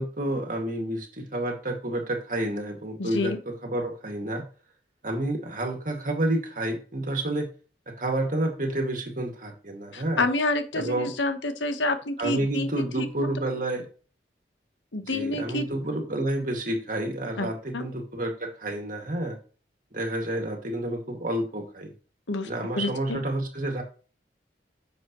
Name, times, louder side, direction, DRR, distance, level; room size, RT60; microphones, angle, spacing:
voice 1, 0.0-4.4 5.0-7.5 7.9-10.2 10.8-11.1 12.2-13.9 15.1-19.4 19.9-21.9 22.4-23.8, right 1 dB, 45° right, 3 dB, 2.2 m, -29 dB
voice 2, 3.0-3.4 9.9-13.3 14.9-15.7 17.4-17.5 17.7-17.9 22.3-22.5 22.8-23.2, left 2 dB, 90° left, 8 dB, 1.3 m, -28 dB
9.9 x 6.7 x 3.1 m, 0.36 s
head